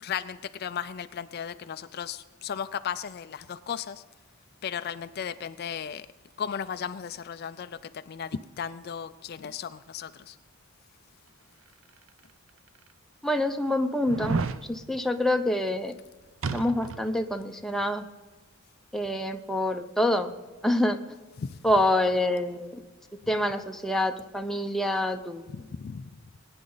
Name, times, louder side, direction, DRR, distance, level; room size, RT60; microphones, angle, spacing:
voice 1, 0.0-4.0 4.6-6.1 6.4-10.4 21.4-21.6 25.5-26.2, left 7 dB, 50° left, 12 dB, 0.4 m, -35 dB
sound 1, 12.1-12.2 12.9-13.0 14.1-14.6 16.4-17.1 17.4-17.5, right 4 dB, 70° right, 0.6 m, -30 dB
voice 2, 13.2-15.9 16.5-18.1 18.9-20.3 20.6-21.0 21.6-22.8 23.3-25.4, left 1 dB, ahead, 5 dB, 0.7 m, -26 dB
21.0 x 9.7 x 4.0 m, 1.3 s
head